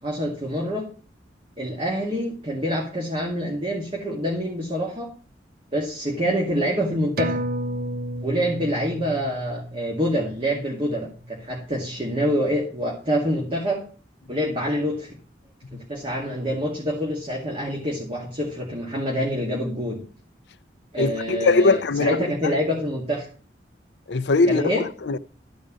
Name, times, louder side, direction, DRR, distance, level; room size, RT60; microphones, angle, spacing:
voice 1, 0.0-0.9 1.6-5.1 5.7-7.4 8.2-13.8 14.3-15.2 15.7-20.0 20.9-23.3 24.4-24.9, equal, 30° right, 2.3 m, -26 dB
sound 1, 7.2-12.1 12.5-12.6, right 1 dB, 55° right, 0.8 m, -33 dB
voice 2, 21.0-22.2 22.4-22.5 24.1-25.2, left 3 dB, 70° left, 0.6 m, -21 dB
13.0 x 5.2 x 7.4 m
head